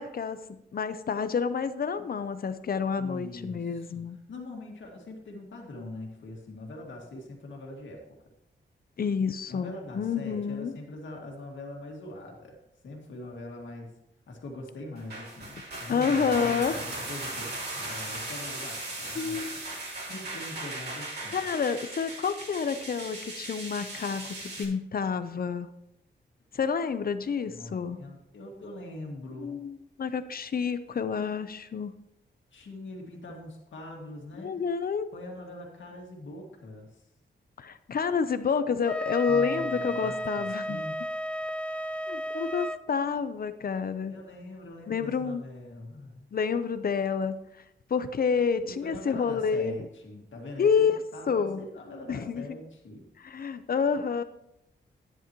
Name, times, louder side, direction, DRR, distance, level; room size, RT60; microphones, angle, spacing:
voice 1, 0.0-4.2 9.0-10.7 15.9-16.8 19.1-19.5 21.3-25.7 26.5-28.0 29.4-31.9 34.4-35.1 37.6-40.8 42.1-44.2 44.9-45.4 46.3-47.6 47.9-49.8 50.6-51.0 51.3-51.6 52.1-52.5 53.2-54.2, left 6 dB, 50° left, 11 dB, 0.7 m, -29 dB
voice 2, 3.0-3.7 3.9-4.0 4.3-8.0 9.5-12.6 12.8-13.9 14.3-19.4 20.0-21.4 27.5-29.6 32.5-34.6 35.1-37.0 39.3-40.9 44.1-46.3 48.6-50.8 51.1-53.0, left 2 dB, 85° left, 0 dB, 2.1 m, -42 dB
sound 1, 15.0-24.6, right 2 dB, 55° right, 3.2 m, -38 dB
Wind instrument woodwind instrument, 38.8-42.8, equal, 5° left, 0.4 m, -33 dB
11.0 x 9.9 x 3.0 m, 0.84 s
wide cardioid pair, 115°, 19 cm